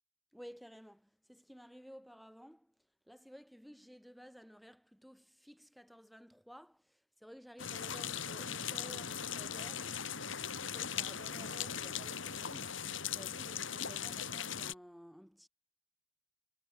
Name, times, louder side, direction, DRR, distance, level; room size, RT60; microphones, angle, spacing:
voice 1, 0.3-2.7 3.1-10.1 10.4-15.5, equal, ahead, 4.7 m, -55 dB
sound 1, 7.6-14.7, left 8 dB, 70° left, 4.6 m, -39 dB
head